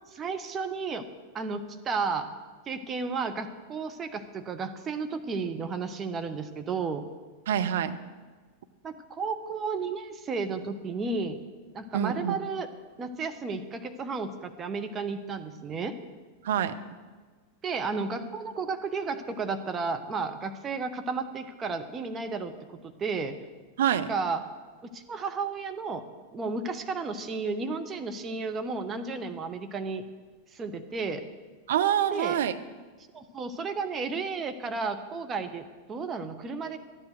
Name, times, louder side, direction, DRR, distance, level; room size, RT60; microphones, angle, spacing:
voice 1, 0.1-1.1 1.3-2.3 2.7-7.0 8.8-11.4 11.7-12.7 13.0-16.0 17.6-23.4 23.9-24.4 24.8-26.0 26.3-30.0 30.5-31.2 32.1-32.4 33.1-36.8, right 4 dB, 25° right, 7 dB, 1.0 m, -33 dB
voice 2, 7.5-8.0 11.9-12.4 16.4-16.8 23.8-24.1 31.7-32.5, right 9 dB, 60° right, 9 dB, 0.7 m, -26 dB
13.5 x 9.9 x 6.3 m, 1.4 s
figure-of-eight pair, 90°, 0 cm